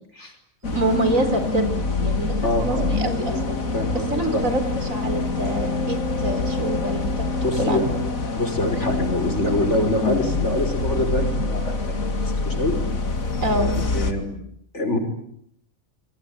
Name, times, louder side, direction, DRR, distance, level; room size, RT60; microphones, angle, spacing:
sound 1, 0.6-14.1, left 3 dB, 85° left, 2.8 m, -25 dB
voice 1, 0.7-1.7 2.0-3.6 3.9-7.9 13.4-13.7, right 1 dB, 80° right, 8 dB, 4.6 m, -26 dB
voice 2, 2.4-3.0 3.7-4.5 7.4-7.9 8.4-12.8 13.5-14.4 14.7-15.0, left 1 dB, 60° left, 6 dB, 5.5 m, -25 dB
27.5 x 22.5 x 9.5 m, 0.71 s
omnidirectional pair, 1.4 m